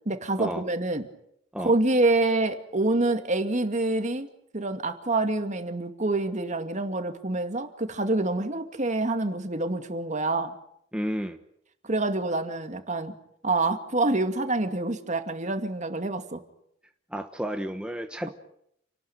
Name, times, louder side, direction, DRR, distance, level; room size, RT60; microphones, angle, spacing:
voice 1, 0.1-1.1 1.6-4.3 4.5-10.5 11.8-13.1 13.4-16.4, right 2 dB, 40° right, 8 dB, 2.3 m, -26 dB
voice 2, 10.9-11.4 17.1-18.3, equal, 5° right, 5 dB, 1.2 m, -31 dB
29.0 x 19.0 x 9.0 m, 0.75 s
head